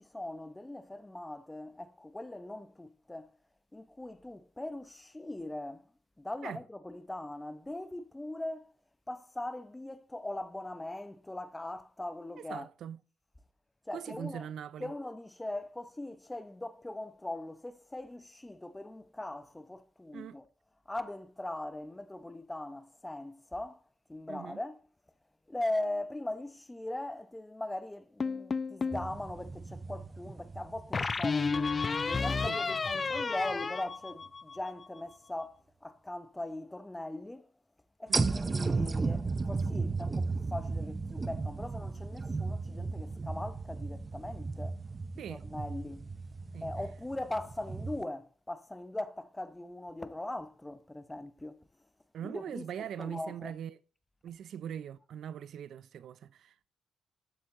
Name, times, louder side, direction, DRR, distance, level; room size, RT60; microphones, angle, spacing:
voice 1, 0.0-3.3 3.7-5.8 6.2-8.7 9.1-12.7 13.9-14.5 14.8-20.5 20.9-23.8 24.1-24.8 25.5-37.5 38.0-44.8 45.2-46.1 46.6-51.6 52.2-52.7 53.0-53.5, left 1 dB, 10° left, 0.9 m, -40 dB
voice 2, 12.4-13.0 13.9-14.9 20.1-20.4 24.3-24.6 32.4-33.1 38.1-38.4 45.2-45.4 46.5-46.7 52.1-53.8 54.2-56.7, right 9 dB, 70° right, 0.4 m, -42 dB
sound 1, 28.2-29.1 30.9-34.7, left 4 dB, 35° left, 0.5 m, -32 dB
sound 2, 28.9-32.6 33.1-33.2 38.1-48.0, right 3 dB, 25° right, 0.6 m, -35 dB
11.5 x 7.3 x 3.8 m
cardioid pair, 90°, 0 cm